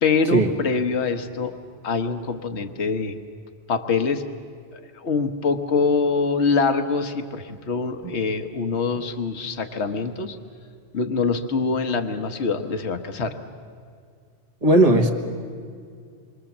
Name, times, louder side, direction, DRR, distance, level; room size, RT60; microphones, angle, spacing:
voice 1, 0.0-1.6 1.8-3.1 3.7-4.2 4.9-10.4 10.9-13.4, left 4 dB, 65° left, 7 dB, 1.4 m, -24 dB
voice 2, 14.6-15.1, right 1 dB, 30° right, 4 dB, 1.7 m, -16 dB
27.0 x 23.0 x 7.3 m, 2.1 s
omnidirectional pair, 1.2 m